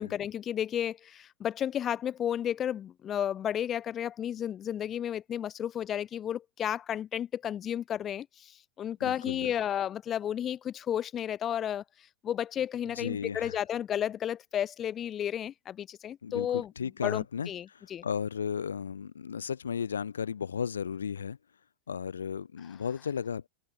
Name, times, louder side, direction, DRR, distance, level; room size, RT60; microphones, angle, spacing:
voice 1, 0.0-11.8 12.2-16.7 17.0-18.1, left 10 dB, 25° left, 4.6 m, -32 dB
voice 2, 9.0-9.5 12.9-13.6 16.2-21.4 21.9-23.5, left 7 dB, 70° left, 2.8 m, -34 dB
open air
figure-of-eight pair, 90°, 0 cm